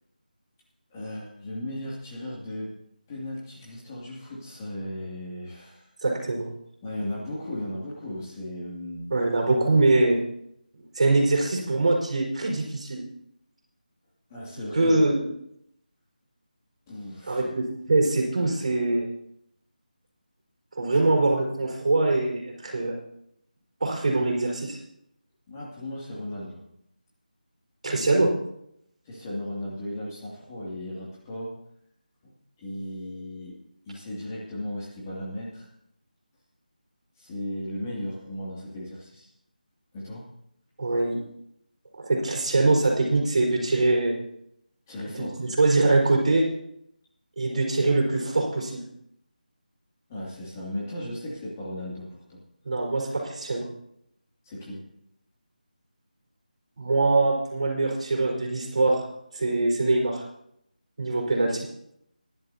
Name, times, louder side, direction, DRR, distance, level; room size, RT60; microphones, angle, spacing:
voice 1, 0.9-2.7 3.1-5.9 6.8-9.1 14.3-15.0 16.9-17.5 21.0-21.1 25.5-26.6 27.9-28.3 29.0-31.6 32.2-33.5 33.9-35.7 37.2-39.3 39.9-40.2 44.9-45.4 50.1-52.4 54.4-54.8, left 1 dB, 20° left, -5 dB, 2.6 m, -36 dB
voice 2, 6.0-6.5 9.1-10.2 10.9-13.0 14.7-15.3 17.3-19.1 20.7-22.9 23.8-24.8 27.8-28.3 40.8-41.2 42.0-44.1 45.1-46.5 47.4-48.8 52.6-53.7 56.8-59.0 59.3-60.2 61.0-61.7, right 2 dB, 45° right, 0 dB, 4.6 m, -23 dB
20.0 x 11.5 x 2.9 m, 0.75 s
figure-of-eight pair, 170°, 5 cm